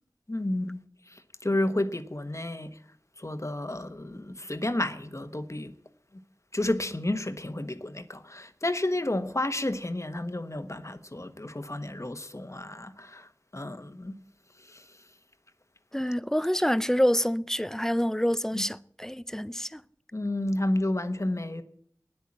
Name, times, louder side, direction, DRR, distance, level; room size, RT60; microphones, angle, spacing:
voice 1, 0.3-2.8 3.2-5.7 6.1-6.2 6.5-14.2 14.6-15.0 18.5-18.6 20.1-21.6, left 1 dB, 45° left, 1.3 m, -31 dB
voice 2, 15.9-19.8, equal, 5° left, 0.6 m, -27 dB
13.0 x 10.5 x 8.6 m
wide cardioid pair, 40°, 7 cm